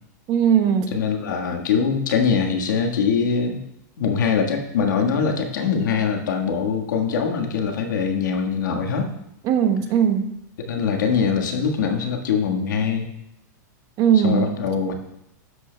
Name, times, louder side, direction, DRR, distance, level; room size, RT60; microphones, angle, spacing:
voice 1, 0.3-1.0 9.4-10.4 14.0-14.5, right 8 dB, 40° right, 5 dB, 1.0 m, -19 dB
voice 2, 0.9-3.6 4.0-9.1 10.6-13.1 14.1-14.9, left 6 dB, 80° left, 3 dB, 1.5 m, -22 dB
13.0 x 8.3 x 2.2 m, 0.84 s
hypercardioid pair, 120°, 10 cm